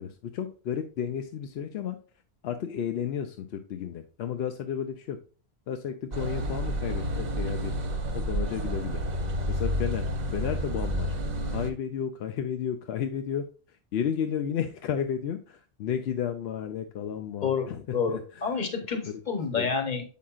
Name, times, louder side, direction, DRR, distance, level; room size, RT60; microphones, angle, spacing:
voice 1, 0.0-2.0 2.4-5.2 5.7-7.7 8.1-9.0 9.5-11.2 11.4-18.4 19.0-19.1 19.5-19.7, left 8 dB, 75° left, 6 dB, 0.8 m, -33 dB
sound 1, 6.1-11.7, equal, 45° right, 0.8 m, -30 dB
voice 2, 17.4-20.0, left 5 dB, 45° left, 6 dB, 1.1 m, -29 dB
7.5 x 5.5 x 2.3 m, 0.39 s
omnidirectional pair, 1.1 m